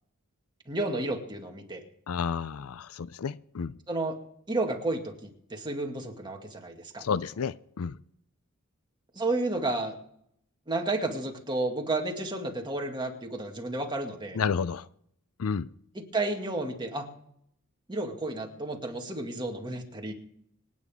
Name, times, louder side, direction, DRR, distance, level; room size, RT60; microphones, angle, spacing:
voice 1, 0.7-1.8 3.9-4.2 4.5-7.1 9.2-10.0 10.7-14.4 16.0-17.1 17.9-20.1, right 2 dB, 20° right, 2 dB, 2.1 m, -31 dB
voice 2, 2.1-3.7 7.0-7.9 14.3-14.9 15.4-15.7, left 6 dB, 75° left, 18 dB, 0.5 m, -31 dB
26.0 x 9.5 x 3.6 m, 0.73 s
head